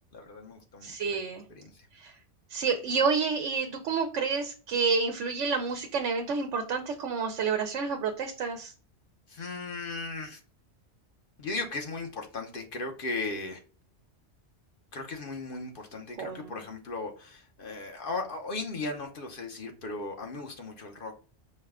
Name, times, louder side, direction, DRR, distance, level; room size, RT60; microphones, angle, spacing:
voice 1, 0.1-1.2 1.5-1.7 9.3-10.4 11.4-13.6 14.9-21.2, left 3 dB, 50° left, 3 dB, 1.0 m, -37 dB
voice 2, 0.8-1.4 2.0-2.1 2.5-8.7 16.2-16.6, right 5 dB, 85° right, 5 dB, 1.0 m, -29 dB
5.4 x 2.2 x 3.5 m, 0.38 s
omnidirectional pair, 1.2 m